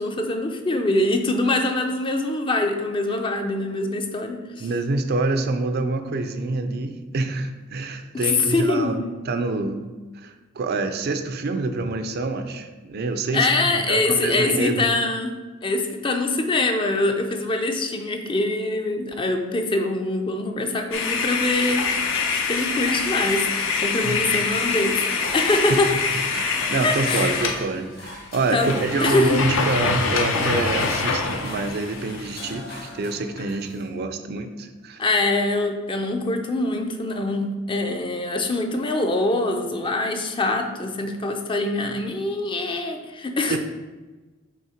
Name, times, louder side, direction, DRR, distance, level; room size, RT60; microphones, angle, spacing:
voice 1, 0.0-4.7 8.1-9.1 13.3-15.3 15.6-21.9 22.3-25.9 26.8-27.3 28.5-29.4 35.0-43.6, left 2 dB, 25° left, 4 dB, 0.5 m, -24 dB
voice 2, 4.6-9.0 9.3-9.8 10.2-13.5 13.7-14.8 24.0-24.4 25.7-26.0 26.3-35.0 43.5-43.6, right 3 dB, 50° right, 8 dB, 0.4 m, -26 dB
sound 1, 20.9-27.6 28.0-28.1 28.3-32.4, left 4 dB, 65° left, 0.7 m, -25 dB
sound 2, 22.8-24.1 24.5-33.9, left 2 dB, 45° left, 1.6 m, -40 dB
5.5 x 3.5 x 4.9 m, 1.2 s
head